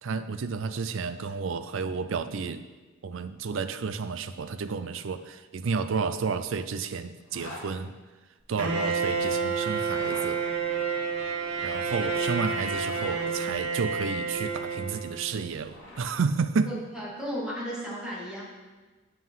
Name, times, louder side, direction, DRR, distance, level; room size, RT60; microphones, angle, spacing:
voice 1, 0.0-2.6 3.0-7.9 8.5-10.4 11.6-16.7, right 5 dB, 70° right, 11 dB, 0.4 m, -31 dB
Zipper (clothing), 7.2-7.7 9.8-10.3 12.4-13.3 15.1-16.2, left 1 dB, 80° left, 3.0 m, -45 dB
Bowed string instrument, 8.6-15.5, right 5 dB, 90° right, 1.7 m, -29 dB
voice 2, 16.6-18.4, equal, 5° right, -7 dB, 2.6 m, -35 dB
7.9 x 7.4 x 5.6 m, 1.2 s
head